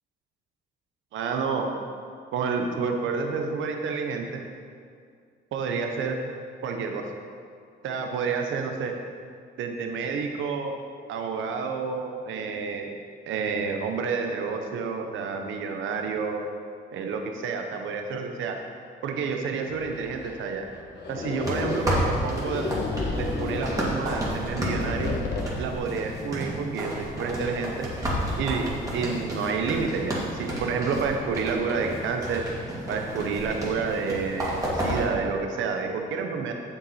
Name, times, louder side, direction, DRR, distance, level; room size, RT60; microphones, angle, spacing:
voice 1, 1.1-1.7 2.3-4.4 5.5-6.2 6.6-7.0 7.8-8.9 9.6-10.8 11.1-12.9 13.3-16.4 16.9-18.6 19.0-20.6 21.1-22.7 23.2-25.1 25.6-27.9 28.4-32.5 32.9-36.5, right 5 dB, 80° right, 4 dB, 0.9 m, -29 dB
sound 1, 19.7-25.5, left 3 dB, 60° left, 1.3 m, -32 dB
sound 2, 21.4-35.1, equal, 15° right, 2.2 m, -31 dB
7.7 x 7.4 x 4.2 m, 2.2 s
cardioid pair, 90°, 20 cm